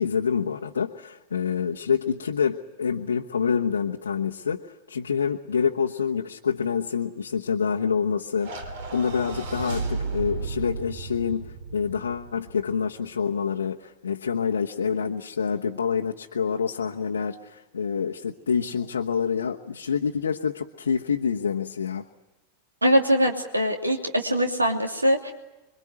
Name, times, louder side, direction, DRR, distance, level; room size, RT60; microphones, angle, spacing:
voice 1, 0.0-22.1, left 6 dB, 70° left, 1 dB, 1.1 m, -27 dB
sound 1, 8.4-12.8, right 4 dB, 55° right, 3.3 m, -34 dB
voice 2, 22.8-25.3, equal, 85° right, 4 dB, 2.9 m, -22 dB
26.5 x 23.5 x 9.4 m, 1.0 s
figure-of-eight pair, 90°, 0 cm